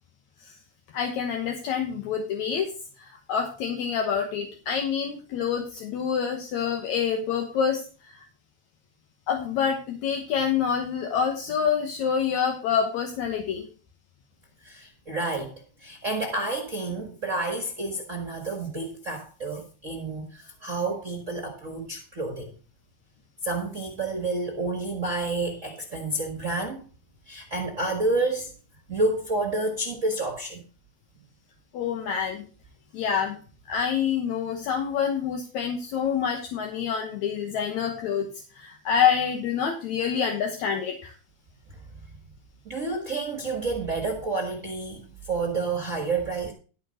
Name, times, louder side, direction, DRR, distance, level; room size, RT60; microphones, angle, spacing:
voice 1, 0.9-2.7 3.0-8.3 9.3-13.7 31.7-32.4 32.9-33.4 33.7-38.3 38.5-41.1, left 7 dB, 75° left, 2.5 m, -27 dB
voice 2, 14.6-15.5 15.8-22.5 23.4-26.8 27.3-28.5 28.9-30.6 42.6-46.5, right 2 dB, 35° right, 1.4 m, -29 dB
12.5 x 4.7 x 6.4 m
omnidirectional pair, 3.3 m